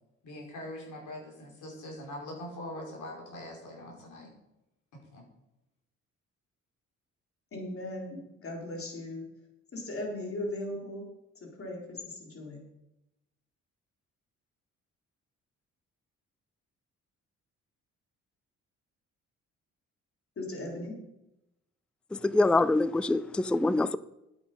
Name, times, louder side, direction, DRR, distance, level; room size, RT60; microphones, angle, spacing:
voice 1, 0.2-4.3 5.1-5.2, left 1 dB, 75° left, 5.3 m, -42 dB
voice 2, 7.5-9.2 9.7-11.1 11.4-12.6 20.4-20.9, left 1 dB, 45° left, 3.7 m, -38 dB
voice 3, 22.2-24.0, left 2 dB, 5° left, 0.4 m, -25 dB
11.5 x 9.0 x 5.3 m
cardioid pair, 90°, 30 cm